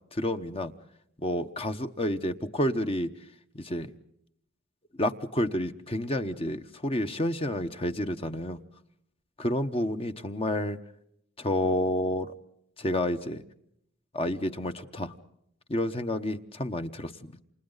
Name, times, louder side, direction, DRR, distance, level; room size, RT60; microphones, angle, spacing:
voice 1, 0.1-0.7 1.2-3.1 3.5-3.9 5.0-8.6 9.4-10.8 11.4-12.3 12.8-13.4 14.1-15.1 15.7-17.4, left 1 dB, 30° left, 8 dB, 1.0 m, -29 dB
29.0 x 27.0 x 4.0 m, 0.74 s
head